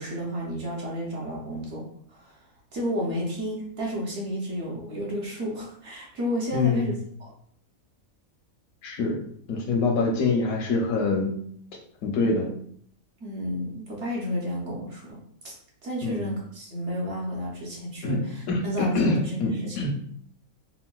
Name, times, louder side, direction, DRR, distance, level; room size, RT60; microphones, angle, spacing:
voice 1, 0.0-2.4 2.7-6.9 7.2-7.3 13.2-15.2 15.4-15.5 15.8-19.8, equal, 60° right, -3 dB, 1.0 m, -32 dB
voice 2, 6.5-6.9 8.8-9.2 9.5-11.4 12.0-12.5 16.0-16.3 18.0-20.0, left 3 dB, 80° left, 2 dB, 1.1 m, -25 dB
3.7 x 2.2 x 2.3 m, 0.62 s
omnidirectional pair, 1.5 m